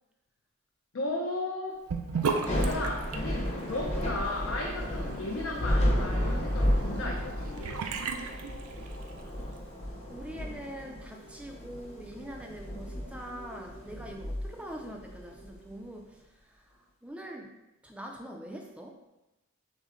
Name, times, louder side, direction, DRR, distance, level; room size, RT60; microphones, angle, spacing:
voice 1, 0.9-1.8 2.5-7.9, left 2 dB, 60° left, -1 dB, 0.5 m, -35 dB
Sink (filling or washing) / Bathtub (filling or washing), 1.9-9.2, right 4 dB, 80° right, 0.5 m, -37 dB
Thunder / Rain, 2.3-15.4, equal, 30° left, 0.8 m, -32 dB
sound 1, 3.7-16.0, equal, 85° left, 0.9 m, -49 dB
voice 2, 10.1-17.5 17.8-19.0, equal, 5° right, 1 dB, 0.4 m, -44 dB
6.2 x 2.1 x 3.7 m, 1.0 s
head